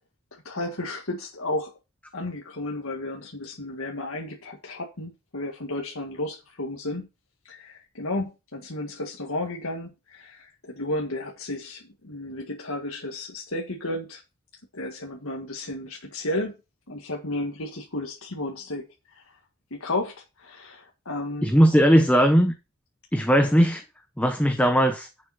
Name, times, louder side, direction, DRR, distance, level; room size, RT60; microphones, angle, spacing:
voice 1, 0.3-1.7 2.1-7.1 7.5-14.2 14.7-16.5 16.9-19.4 19.7-21.5, left 2 dB, 75° left, 1.8 m, -33 dB
voice 2, 21.4-22.5 23.1-23.8 24.2-25.1, equal, 5° left, 1.0 m, -18 dB
10.5 x 6.9 x 4.2 m
head